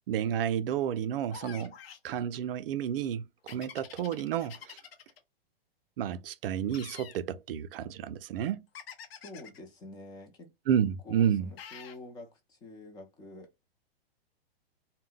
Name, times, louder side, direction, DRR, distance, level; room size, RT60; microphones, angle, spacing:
voice 1, 0.1-1.7 2.0-4.8 6.0-8.7 10.7-11.5, right 9 dB, 65° right, 0.4 m, -31 dB
sound 1, 1.3-2.1 3.5-5.2 6.7-7.2 8.7-9.6 11.6-12.0, left 7 dB, 75° left, 0.7 m, -47 dB
voice 2, 9.2-10.5 11.0-13.6, left 2 dB, 15° left, 0.4 m, -48 dB
2.1 x 2.1 x 3.6 m
hypercardioid pair, 135°, 30 cm